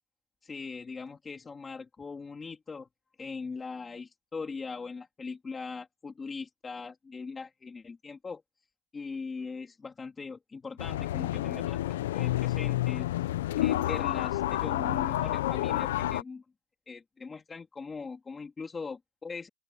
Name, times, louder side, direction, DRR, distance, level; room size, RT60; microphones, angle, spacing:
voice 1, 0.4-2.9 3.2-8.4 8.9-13.1 13.6-16.4 16.9-19.5, left 4 dB, 10° left, 3.1 m, -40 dB
sound 1, 10.8-16.2, left 14 dB, 65° left, 0.8 m, -29 dB
open air
supercardioid pair, 175°, 0 cm